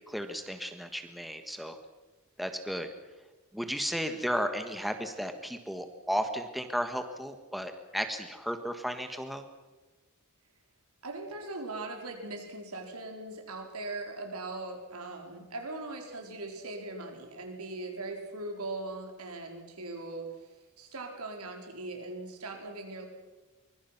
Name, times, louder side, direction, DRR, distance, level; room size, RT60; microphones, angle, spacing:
voice 1, 0.1-1.8 2.4-2.9 3.5-9.4, equal, ahead, 7 dB, 1.4 m, -34 dB
voice 2, 11.0-20.3 20.8-23.1, right 2 dB, 80° right, 3 dB, 4.7 m, -40 dB
24.0 x 23.0 x 6.0 m, 1.2 s
head